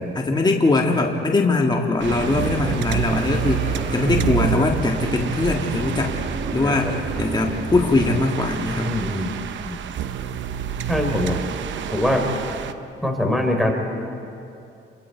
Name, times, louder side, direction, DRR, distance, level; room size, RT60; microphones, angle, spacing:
voice 1, 0.0-6.1 6.5-6.9 7.2-8.9, left 3 dB, 20° left, 1 dB, 1.7 m, -21 dB
sound 1, 2.0-8.2, right 4 dB, 55° right, 1.6 m, -31 dB
sound 2, 2.0-12.7, right 9 dB, 70° right, 0.9 m, -29 dB
sound 3, 3.2-5.3, right 1 dB, 85° right, 6.6 m, -37 dB
voice 2, 6.6-6.9 8.9-9.3 9.6-9.8 10.9-11.4 11.9-12.3 13.0-13.7, left 1 dB, ahead, 2 dB, 3.6 m, -22 dB
28.5 x 23.5 x 4.6 m, 2.6 s
cardioid pair, 90°, 20 cm